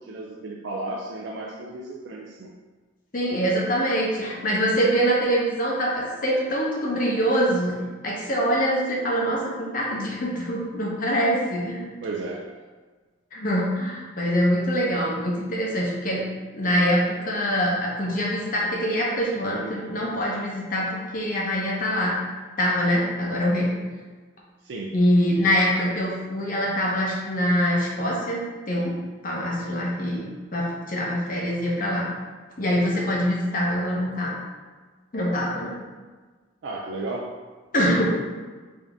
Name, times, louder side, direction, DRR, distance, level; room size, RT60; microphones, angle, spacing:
voice 1, 0.0-2.5 12.0-12.6 24.6-25.0 36.6-37.4, right 2 dB, 65° right, -1 dB, 0.3 m, -34 dB
voice 2, 3.1-7.8 8.0-12.0 13.3-16.2 16.5-22.1 22.6-23.7 24.9-28.4 28.7-28.9 29.2-32.1 32.6-34.3 35.1-35.7 37.7-38.1, equal, 40° left, -4 dB, 0.7 m, -24 dB
3.6 x 2.6 x 3.4 m, 1.4 s
head